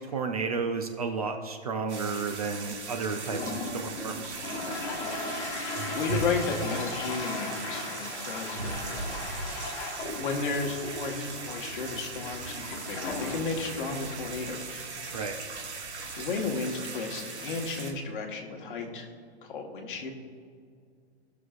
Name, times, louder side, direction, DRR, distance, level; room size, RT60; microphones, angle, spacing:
voice 1, 0.0-4.4 15.1-15.4, right 4 dB, 35° right, 5 dB, 0.4 m, -32 dB
sound 1, 1.9-17.9, right 4 dB, 80° right, 1.6 m, -39 dB
Toilet flush, 3.1-16.3, left 2 dB, 10° left, 0.8 m, -38 dB
voice 2, 5.9-9.7 10.1-14.8 16.2-19.1 19.4-20.1, left 4 dB, 50° left, 2 dB, 1.4 m, -34 dB
17.5 x 6.2 x 2.5 m, 2.1 s
hypercardioid pair, 165°, 34 cm